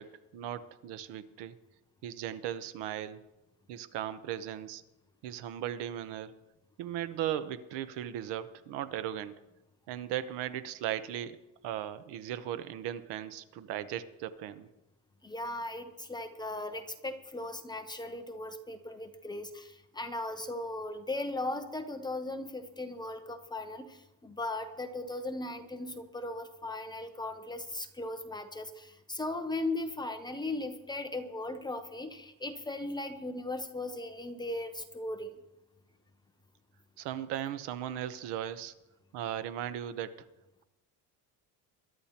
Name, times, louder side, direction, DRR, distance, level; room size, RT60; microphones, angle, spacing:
voice 1, 0.0-1.6 2.0-3.2 3.7-4.8 5.2-6.3 6.8-9.4 9.9-11.4 11.6-14.7 37.0-38.7 39.1-40.2, right 11 dB, 80° right, 12 dB, 1.0 m, -37 dB
voice 2, 15.2-35.4, left 2 dB, 10° left, 6 dB, 0.5 m, -38 dB
21.5 x 11.5 x 2.9 m, 0.97 s
cardioid pair, 165°, 41 cm